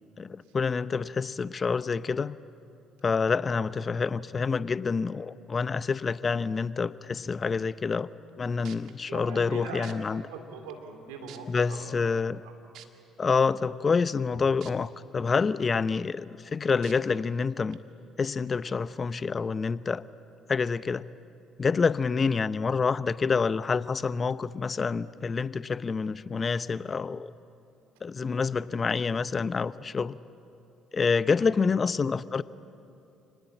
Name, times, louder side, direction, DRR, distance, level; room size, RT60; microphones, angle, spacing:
voice 1, 0.2-2.4 3.0-8.1 8.4-10.2 11.5-12.4 13.2-17.8 18.2-20.0 20.5-21.1 21.6-27.3 28.0-30.2 30.9-32.4, left 5 dB, 40° left, 16 dB, 0.7 m, -27 dB
sound 1, 8.3-8.4 8.6-8.9 9.8-9.9 10.7-10.8 11.3-11.6 12.7-12.9 14.6-14.7 15.2-15.3 16.8-16.9 17.7-17.8, right 12 dB, 70° right, 1.6 m, -47 dB
voice 2, 9.1-9.9 10.3-12.1 12.4-12.5 31.4-31.6, right 5 dB, 85° right, 4 dB, 3.2 m, -41 dB
28.5 x 19.5 x 8.7 m, 2.8 s
hypercardioid pair, 55°, 0 cm